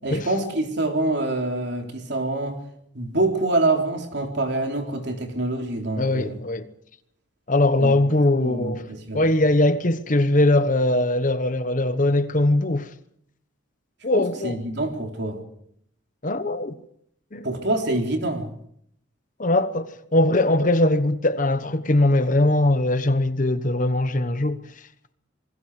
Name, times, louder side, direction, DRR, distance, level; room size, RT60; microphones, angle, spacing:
voice 1, 0.0-2.6 2.9-6.4 7.8-7.9 8.4-9.3 14.1-15.4 17.4-18.5, right 2 dB, 55° right, 3.7 m, -26 dB
voice 2, 6.0-6.7 7.5-8.9 9.1-12.9 14.0-14.6 16.2-16.7 17.3-17.4 19.4-24.6, left 1 dB, 40° left, 1.1 m, -21 dB
28.0 x 21.0 x 5.0 m
head